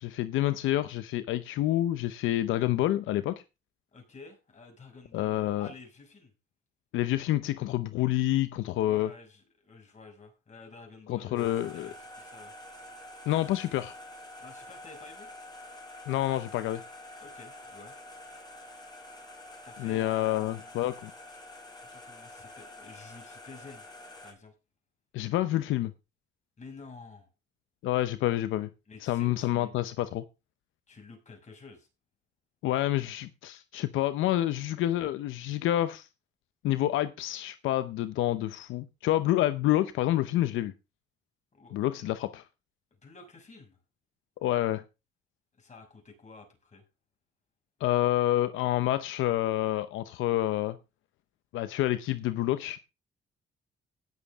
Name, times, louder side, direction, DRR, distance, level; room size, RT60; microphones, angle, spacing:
voice 1, 0.0-3.4 5.1-5.7 6.9-9.1 11.1-11.9 13.3-14.0 16.1-16.8 19.8-21.1 25.1-25.9 27.8-28.7 29.0-30.2 32.6-36.1 36.6-40.7 41.7-42.4 44.4-44.8 47.8-50.8 51.5-52.8, left 14 dB, 90° left, 0.8 m, -28 dB
voice 2, 3.9-6.3 8.8-12.5 14.4-15.3 17.2-18.0 19.6-20.7 21.9-23.8 24.2-24.5 26.6-27.3 28.9-29.7 30.9-31.9 41.5-42.1 43.0-43.8 45.6-46.8, left 4 dB, 35° left, 6.3 m, -50 dB
sound 1, 11.4-24.3, left 1 dB, 20° left, 5.0 m, -47 dB
17.5 x 7.2 x 3.6 m
cardioid pair, 90°, 20 cm